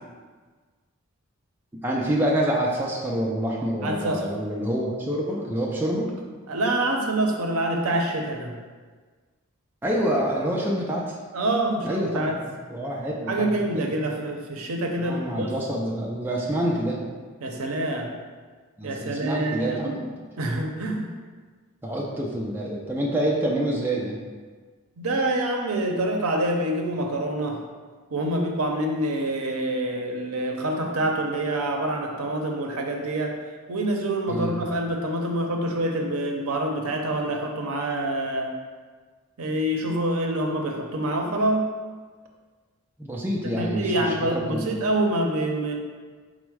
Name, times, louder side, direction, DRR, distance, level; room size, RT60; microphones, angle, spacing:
voice 1, 1.8-6.1 9.8-11.2 11.8-13.9 15.0-17.0 18.8-20.1 21.8-24.2 34.3-34.6 43.0-44.7, right 1 dB, 10° right, -3 dB, 0.4 m, -27 dB
voice 2, 3.8-4.2 6.5-8.6 11.3-12.4 13.3-15.5 17.4-18.1 18.8-20.0 20.4-21.1 25.0-27.6 28.1-33.4 33.7-38.5 39.4-41.7 43.6-45.7, right 1 dB, 80° right, 2 dB, 0.6 m, -26 dB
4.4 x 2.1 x 4.6 m, 1.5 s
head